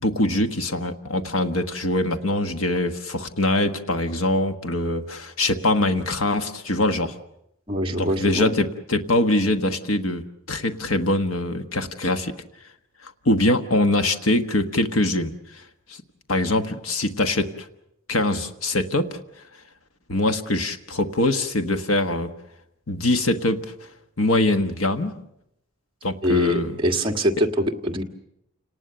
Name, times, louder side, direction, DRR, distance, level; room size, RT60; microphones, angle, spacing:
voice 1, 0.0-7.2 7.9-12.3 13.0-15.6 15.9-16.0 16.3-17.7 18.1-19.2 20.1-22.3 22.9-23.9 24.2-25.2 26.0-26.7, left 1 dB, 80° left, 7 dB, 1.3 m, -23 dB
voice 2, 7.7-8.5 26.2-28.0, equal, 25° right, 2 dB, 1.7 m, -23 dB
29.0 x 19.0 x 6.8 m, 0.81 s
head